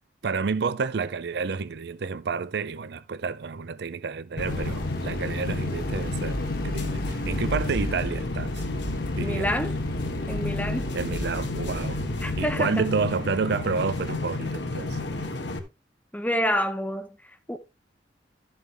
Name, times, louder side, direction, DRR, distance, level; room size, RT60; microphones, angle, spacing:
voice 1, 0.2-8.6 9.2-9.5 10.9-12.0 12.4-15.1, right 5 dB, 65° right, 0.5 m, -30 dB
sound 1, 4.4-15.6, left 2 dB, 80° left, 1.5 m, -32 dB
sound 2, 4.4-12.5, left 1 dB, 55° left, 1.6 m, -33 dB
voice 2, 9.2-9.8 10.3-11.0 12.2-12.9 16.1-17.6, equal, 10° left, 1.0 m, -28 dB
12.0 x 7.4 x 3.4 m
head